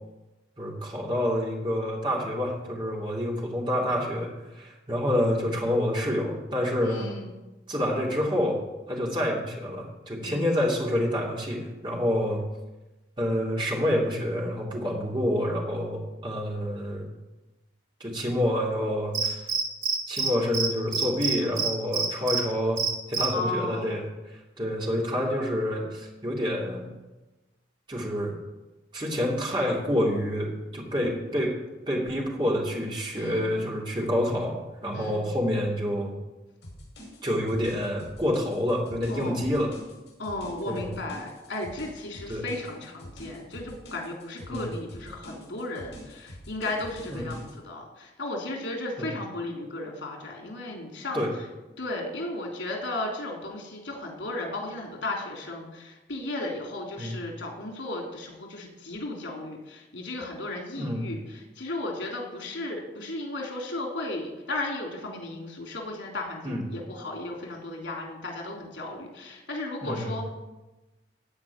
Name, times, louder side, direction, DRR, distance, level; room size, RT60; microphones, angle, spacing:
voice 1, 0.6-4.3 4.6-7.1 7.7-8.6 8.9-12.4 13.2-17.1 18.0-19.4 20.1-22.8 23.1-24.0 24.6-26.9 27.9-28.4 28.9-31.5 31.9-36.1 37.2-39.7 40.7-40.9 42.3-42.4 44.5-44.7 47.1-47.3 49.0-49.1 51.1-51.3 57.0-57.1 60.7-61.1 66.4-66.6 69.8-70.1, equal, 25° right, -3 dB, 2.9 m, -28 dB
voice 2, 6.8-7.4 10.2-10.6 23.3-24.0 33.1-33.6 34.9-35.3 39.1-39.4 40.2-51.2 51.8-70.3, left 2 dB, 85° left, 1 dB, 3.5 m, -35 dB
Cricket, 19.1-20.3 20.5-20.7 20.9-22.4 22.8-23.3, right 5 dB, 80° right, 2.4 m, -26 dB
sound 1, 36.6-47.5, equal, 70° left, 6.0 m, -45 dB
15.5 x 5.2 x 9.6 m, 1.1 s
head